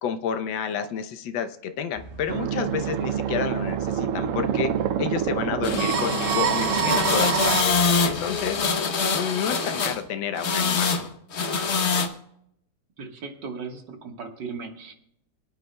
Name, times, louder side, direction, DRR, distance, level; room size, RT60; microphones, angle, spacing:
voice 1, 0.0-4.7 5.0-7.7 8.0-8.6 9.1-10.9, left 7 dB, 85° left, 8 dB, 1.5 m, -30 dB
sound 1, 1.9-8.7, right 4 dB, 35° right, 1.7 m, -44 dB
sound 2, 2.3-7.6, right 9 dB, 85° right, 0.7 m, -26 dB
sound 3, 5.6-10.0 10.4-11.1 11.3-12.1, left 5 dB, 45° left, 1.0 m, -25 dB
voice 2, 13.0-14.9, right 5 dB, 70° right, 3 dB, 2.1 m, -37 dB
25.0 x 9.2 x 2.2 m, 0.73 s
omnidirectional pair, 2.0 m